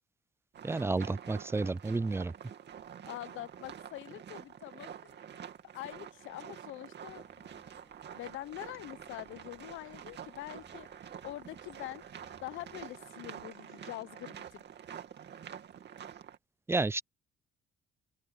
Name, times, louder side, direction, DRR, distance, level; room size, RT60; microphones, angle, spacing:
sound 1, 0.5-16.4, right 8 dB, 60° right, 2.5 m, -48 dB
voice 1, 0.6-2.3 16.7-17.0, right 3 dB, 15° right, 0.3 m, -31 dB
voice 2, 3.1-5.2 5.7-7.6 8.1-10.9 11.2-12.0 12.4-14.6, left 16 dB, 90° left, 0.7 m, -44 dB
sound 2, 7.0-13.0, left 1 dB, 10° left, 4.8 m, -65 dB
open air
cardioid pair, 90°, 20 cm